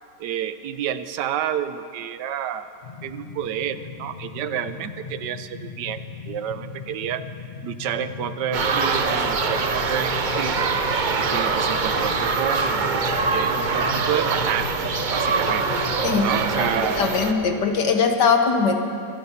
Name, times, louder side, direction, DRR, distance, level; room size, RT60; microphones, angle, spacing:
voice 1, 0.2-2.7 3.0-6.0 6.3-7.2 7.6-10.6 11.2-12.8 13.3-15.7 16.2-17.0, right 9 dB, 80° right, 12 dB, 1.3 m, -29 dB
sound 1, 2.8-16.8, left 5 dB, 40° left, 0.7 m, -37 dB
sound 2, 8.5-17.3, right 4 dB, 50° right, 0.5 m, -24 dB
voice 2, 17.0-18.8, left 5 dB, 80° left, 5 dB, 1.8 m, -20 dB
25.0 x 9.5 x 5.7 m, 2.5 s
omnidirectional pair, 1.8 m